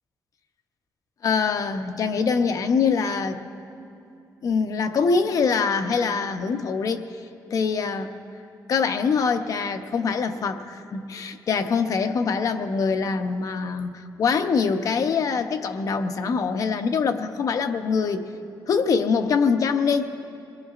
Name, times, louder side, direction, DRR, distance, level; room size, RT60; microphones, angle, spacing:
voice 1, 1.2-3.4 4.4-7.1 7.5-8.1 8.7-18.3 18.7-20.1, left 5 dB, 50° left, 7 dB, 0.7 m, -24 dB
23.0 x 21.0 x 2.5 m, 2.6 s
cardioid pair, 140°, 7 cm